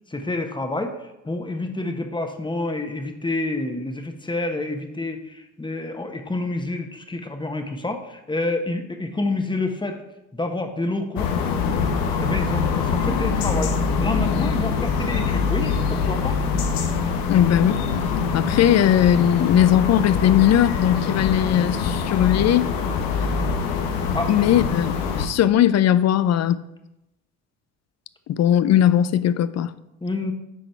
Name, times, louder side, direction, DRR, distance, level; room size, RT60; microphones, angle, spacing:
voice 1, 0.1-0.9 1.2-10.0 10.3-11.3 12.2-13.7 14.0-16.4 24.1-24.3 30.0-30.3, left 2 dB, 15° left, 1.3 m, -28 dB
sound 1, 11.2-25.3, left 5 dB, 75° left, 1.0 m, -24 dB
voice 2, 17.3-17.8 18.3-22.7 24.3-26.6 28.3-29.7, left 10 dB, 50° left, 0.5 m, -18 dB
10.5 x 4.0 x 4.6 m
hypercardioid pair, 60°, 35 cm